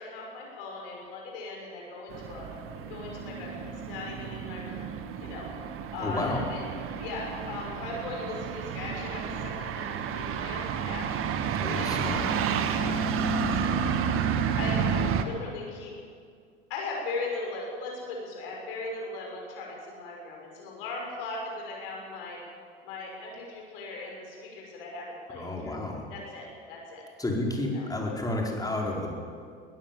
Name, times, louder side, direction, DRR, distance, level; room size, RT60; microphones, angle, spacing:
voice 1, 0.0-2.5 2.8-4.9 5.2-5.5 5.9-6.6 7.0-11.1 11.7-12.2 12.4-14.2 14.6-15.9 16.7-22.4 22.8-25.7 26.1-27.0 27.7-27.9, left 3 dB, 65° left, -1 dB, 6.0 m, -38 dB
sound 1, 2.1-15.2, right 7 dB, 45° right, 1.7 m, -31 dB
voice 2, 6.0-6.4 11.6-12.3 25.3-26.1 27.2-29.1, left 2 dB, 10° left, -1 dB, 5.0 m, -31 dB
21.5 x 16.0 x 7.8 m, 2.2 s
figure-of-eight pair, 75°, 31 cm